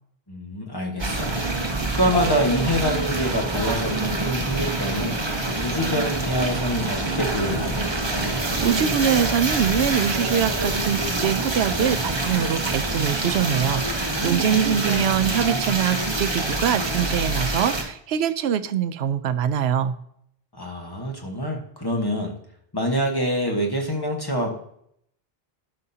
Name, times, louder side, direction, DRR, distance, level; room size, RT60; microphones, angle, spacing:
voice 1, 0.3-1.3 1.8-5.2 5.6-7.8 14.4-14.5 14.9-15.2 20.5-22.3 22.7-24.5, equal, 20° left, 1 dB, 1.4 m, -26 dB
sound 1, 1.0-17.8, right 2 dB, 25° right, 1.0 m, -26 dB
voice 2, 8.3-19.9, right 9 dB, 90° right, 12 dB, 0.9 m, -24 dB
12.0 x 5.7 x 2.8 m, 0.69 s
omnidirectional pair, 1.0 m